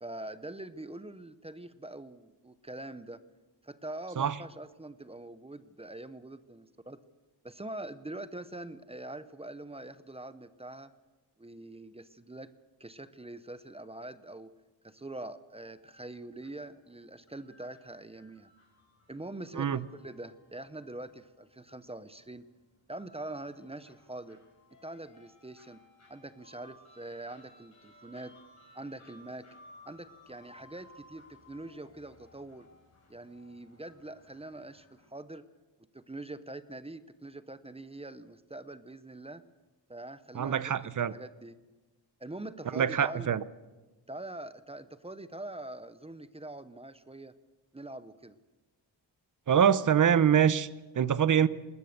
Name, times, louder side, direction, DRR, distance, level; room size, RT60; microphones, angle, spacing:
voice 1, 0.0-3.2 3.6-7.0 7.4-10.9 11.4-12.5 12.8-14.5 14.8-18.5 19.1-22.5 22.9-24.4 24.8-25.8 26.1-28.4 28.7-29.5 29.9-32.7 33.1-35.5 35.9-39.4 39.9-40.7 41.1-41.6 42.2-43.3 44.1-47.3 47.7-48.4, right 2 dB, 15° right, 0.6 m, -44 dB
sound 1, 15.8-35.1, left 1 dB, 40° left, 5.9 m, -60 dB
voice 2, 40.3-41.1 42.7-43.4 49.5-51.5, right 8 dB, 45° right, 0.7 m, -25 dB
20.5 x 20.0 x 6.6 m
wide cardioid pair, 180°, 42 cm